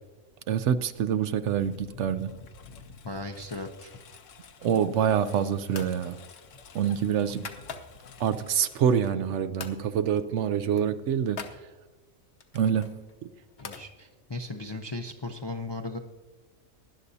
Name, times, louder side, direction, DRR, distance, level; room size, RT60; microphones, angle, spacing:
voice 1, 0.5-2.3 4.6-6.2 6.7-7.5 8.2-11.4 12.5-13.3, right 8 dB, 70° right, 12 dB, 0.8 m, -26 dB
Engine, 0.9-9.6, left 5 dB, 70° left, 1.2 m, -51 dB
voice 2, 3.0-4.1 13.6-16.0, left 2 dB, 35° left, 4 dB, 0.4 m, -37 dB
sound 1, 4.8-5.2 5.7-6.0 6.4-8.2 8.6-9.3 9.6-9.8 10.1-10.3 10.5-11.6 12.4-13.9, left 5 dB, 50° left, 1.1 m, -43 dB
19.0 x 11.0 x 2.8 m, 1.2 s
omnidirectional pair, 1.4 m